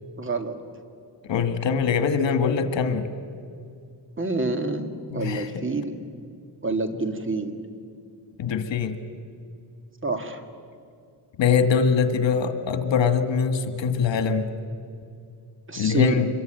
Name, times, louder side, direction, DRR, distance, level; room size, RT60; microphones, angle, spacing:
voice 1, 0.2-0.6 4.2-5.9 6.6-7.6 10.0-10.4 15.7-16.2, right 2 dB, 25° right, 6 dB, 2.1 m, -27 dB
voice 2, 1.3-3.1 5.1-5.7 8.4-9.0 11.4-14.5 15.8-16.3, left 6 dB, 80° left, 8 dB, 1.9 m, -23 dB
26.0 x 22.5 x 9.1 m, 2.4 s
wide cardioid pair, 135°, 44 cm